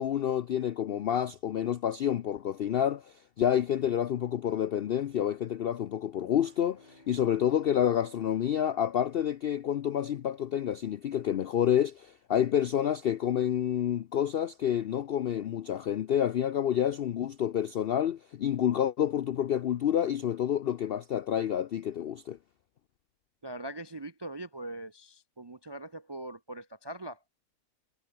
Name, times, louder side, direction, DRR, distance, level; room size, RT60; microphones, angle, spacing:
voice 1, 0.0-22.4, left 10 dB, 70° left, 0.5 m, -28 dB
sound 1, 6.1-10.2, left 1 dB, 30° left, 5.8 m, -58 dB
voice 2, 23.4-27.2, right 1 dB, 35° right, 0.4 m, -41 dB
omnidirectional pair, 1.6 m